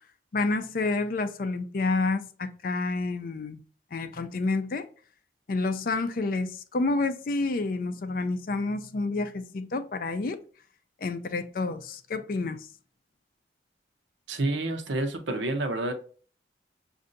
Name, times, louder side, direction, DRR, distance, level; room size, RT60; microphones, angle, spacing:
voice 1, 0.3-3.6 3.9-4.9 5.5-10.4 11.0-12.6, left 3 dB, 50° left, 0.4 m, -29 dB
voice 2, 14.3-15.9, right 2 dB, 85° right, 0.7 m, -29 dB
6.4 x 2.6 x 2.5 m
head